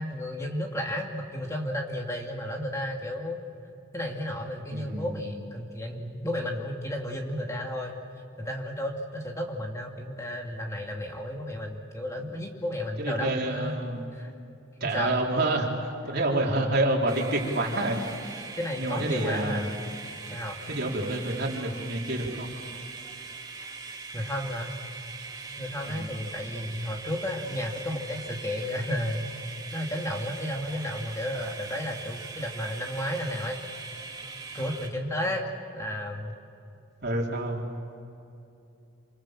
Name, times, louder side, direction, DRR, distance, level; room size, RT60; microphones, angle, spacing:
voice 1, 0.0-3.4 3.9-8.0 8.4-13.7 14.1-14.3 14.8-15.2 18.6-19.7 20.3-20.6 24.1-24.7 25.6-29.3 29.7-33.6 34.5-35.4 35.7-36.4, left 1 dB, 15° left, 1 dB, 2.4 m, -33 dB
voice 2, 4.7-5.3 13.0-14.1 14.8-18.4 18.8-19.6 20.7-22.5 25.9-26.1 37.0-37.7, right 2 dB, 50° right, -1 dB, 4.2 m, -28 dB
sound 1, 17.1-34.9, right 4 dB, 20° right, 2.6 m, -41 dB
28.0 x 26.5 x 7.5 m, 2.7 s
head